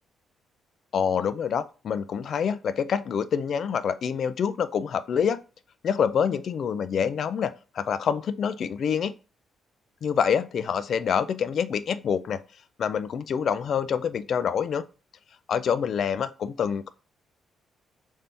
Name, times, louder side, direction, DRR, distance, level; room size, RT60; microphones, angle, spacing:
voice 1, 0.9-5.4 5.8-9.1 10.0-12.4 12.8-14.8 15.5-16.9, left 7 dB, 60° left, 0.3 m, -26 dB
3.4 x 2.7 x 4.1 m
cardioid pair, 90°, 0 cm